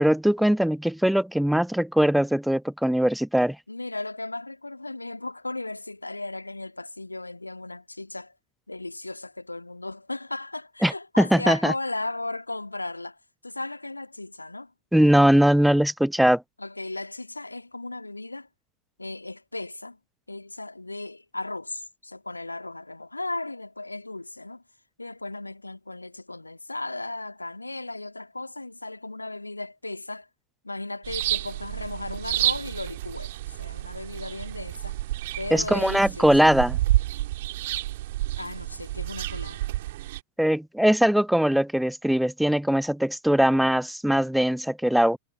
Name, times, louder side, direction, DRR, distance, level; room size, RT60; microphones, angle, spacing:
voice 1, 0.0-3.6 10.8-11.7 14.9-16.4 35.5-36.8 40.4-45.2, equal, ahead, 0.5 m, -21 dB
voice 2, 3.7-8.3 8.7-13.2 13.4-14.7 16.6-18.5 19.0-20.0 20.3-24.6 25.0-30.3 30.6-35.0 35.4-36.3 38.4-39.6, left 2 dB, 85° left, 2.1 m, -36 dB
sound 1, 31.0-40.2, right 16 dB, 55° right, 3.0 m, -30 dB
figure-of-eight pair, 90°, 0 cm